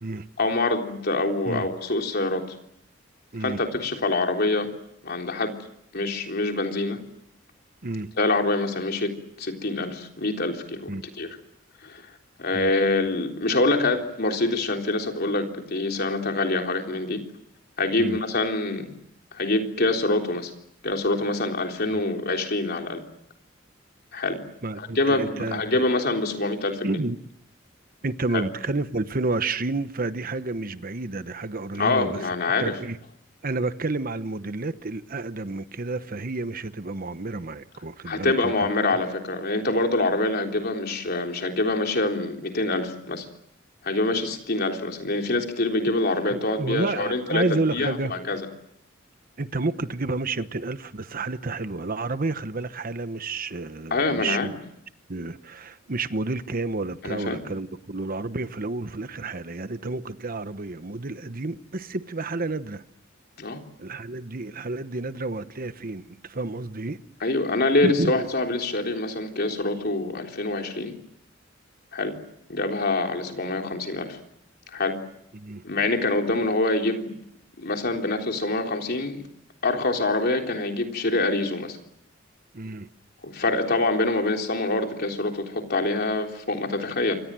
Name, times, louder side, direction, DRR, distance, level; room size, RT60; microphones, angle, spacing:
voice 1, 0.4-2.6 3.4-4.7 5.0-5.5 5.9-7.0 8.2-10.9 11.2-11.3 11.8-12.0 12.4-17.2 17.8-18.9 19.3-20.5 20.8-23.0 24.1-24.4 24.8-27.0 28.3-28.4 31.8-32.8 38.1-43.3 43.8-48.4 53.9-54.5 57.0-57.4 63.4-63.6 67.2-70.9 71.9-72.2 72.5-74.2 74.7-75.0 75.6-77.2 77.6-79.2 79.6-81.8 83.2-87.2, left 2 dB, 55° left, 3.7 m, -25 dB
voice 2, 24.6-25.9 26.8-27.2 28.0-32.2 32.6-33.0 33.4-38.7 46.3-48.1 49.4-54.6 55.1-62.8 63.8-67.0 67.8-68.3 75.3-75.6 82.5-82.9, right 3 dB, 50° right, 1.0 m, -30 dB
28.0 x 24.5 x 7.6 m
head